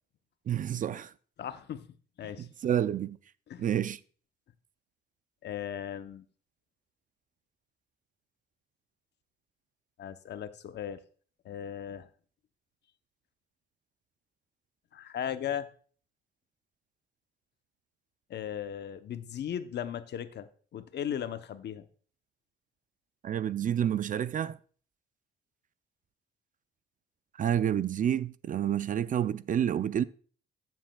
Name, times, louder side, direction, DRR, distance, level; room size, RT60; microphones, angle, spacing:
voice 1, 0.5-1.1 2.4-3.2 3.6-4.0 23.2-24.6 27.4-30.0, right 10 dB, 40° right, 0.4 m, -29 dB
voice 2, 1.4-1.9 2.2-2.5 3.5-3.6 5.4-6.2 10.0-11.0 11.4-12.1 14.9-15.7 18.3-21.8, left 9 dB, 60° left, 0.7 m, -37 dB
13.5 x 7.4 x 2.2 m
cardioid pair, 90°, 20 cm